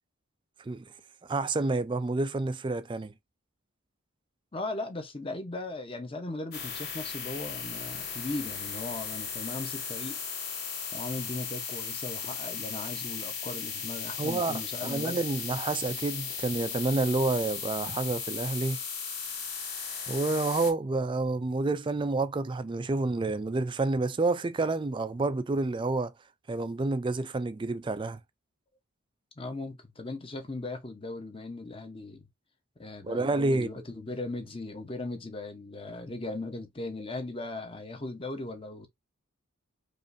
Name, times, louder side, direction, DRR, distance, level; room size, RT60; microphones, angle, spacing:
voice 1, 1.2-3.1 14.2-18.8 20.1-26.1 26.5-28.2 33.0-33.8, right 3 dB, 20° right, 0.3 m, -29 dB
voice 2, 4.5-10.2 10.9-15.3 29.4-32.3 32.8-38.9, left 2 dB, 25° left, 0.8 m, -38 dB
sound 1, 6.5-20.7, left 6 dB, 45° left, 1.6 m, -36 dB
5.0 x 2.5 x 2.6 m
head